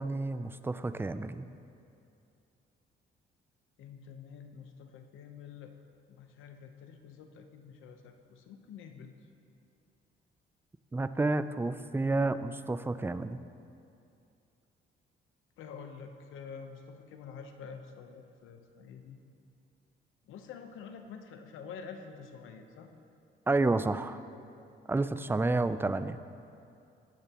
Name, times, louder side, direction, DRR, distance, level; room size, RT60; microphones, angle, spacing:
voice 1, 0.0-1.5 10.9-13.4 23.5-24.2 24.9-26.2, right 3 dB, 10° right, 12 dB, 0.4 m, -30 dB
voice 2, 3.8-5.7 6.1-9.1 15.6-19.2 20.2-22.9, left 6 dB, 85° left, 6 dB, 0.9 m, -47 dB
17.5 x 10.5 x 3.0 m, 2.6 s
cardioid pair, 90°, 20 cm